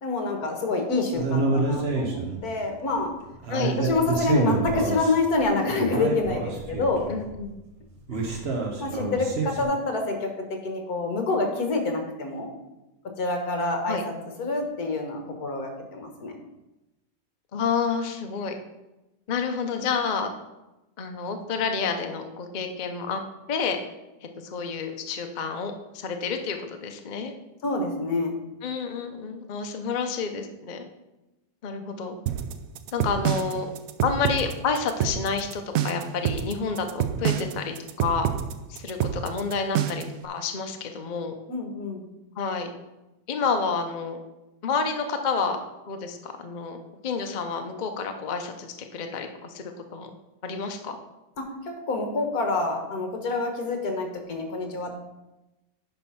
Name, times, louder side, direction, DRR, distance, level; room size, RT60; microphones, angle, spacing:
voice 1, 0.0-3.1 3.8-7.1 8.1-8.3 8.8-12.5 13.0-14.1 14.4-16.4 27.6-28.4 41.5-42.1 51.4-54.9, left 3 dB, 55° left, 4 dB, 1.7 m, -27 dB
sound 1, 1.1-2.4 2.9-3.0 3.3-5.4 5.7-7.4 8.1-9.6, right 4 dB, 40° right, 1.1 m, -28 dB
voice 2, 7.1-7.5 13.9-14.0 17.5-18.5 19.3-20.3 21.0-23.2 23.5-23.8 24.4-27.3 28.6-30.9 31.6-32.2 32.9-33.7 34.0-38.3 38.7-41.3 42.4-42.7 43.3-44.2 44.6-45.6 45.9-46.8 47.0-50.1 50.4-51.0, left 5 dB, 75° left, 5 dB, 0.4 m, -29 dB
sound 2, 32.3-40.2, right 10 dB, 75° right, 0.8 m, -27 dB
9.8 x 4.2 x 5.7 m, 0.99 s
omnidirectional pair, 2.0 m